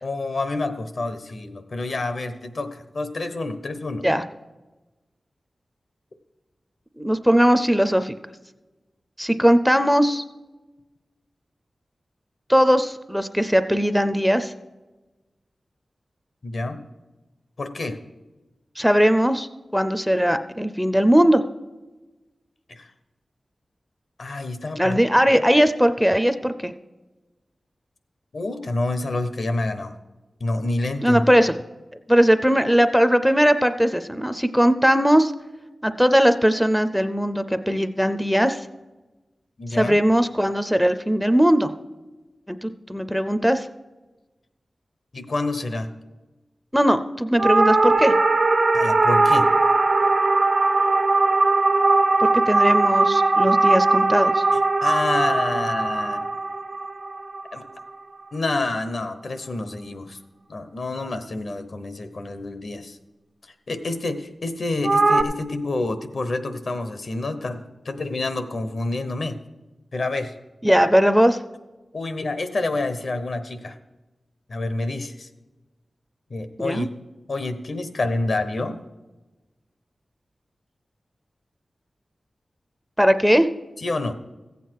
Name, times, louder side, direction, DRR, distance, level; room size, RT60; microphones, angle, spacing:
voice 1, 0.0-4.1 16.4-16.8 17.6-18.0 22.7-22.9 24.2-25.0 28.3-29.9 30.4-31.2 39.6-40.0 45.1-45.9 48.7-49.5 54.8-56.4 57.5-57.6 58.3-60.2 60.5-63.0 63.7-69.4 69.9-70.3 71.9-73.8 74.5-75.3 76.3-76.9 77.3-78.8 83.8-84.1, left 2 dB, 65° left, 9 dB, 0.9 m, -28 dB
voice 2, 7.0-8.1 9.2-10.2 12.5-14.5 18.8-19.5 19.7-21.4 24.8-26.7 31.0-31.5 32.1-35.3 35.8-38.7 39.7-41.7 42.5-43.7 46.7-48.1 52.2-54.4 70.6-71.4 76.6-76.9 83.0-83.5, equal, ahead, 11 dB, 0.5 m, -19 dB
sound 1, 47.4-57.9 64.8-65.2, right 3 dB, 45° right, 0.7 m, -19 dB
15.0 x 8.2 x 4.6 m, 1.1 s
wide cardioid pair, 100°, 0 cm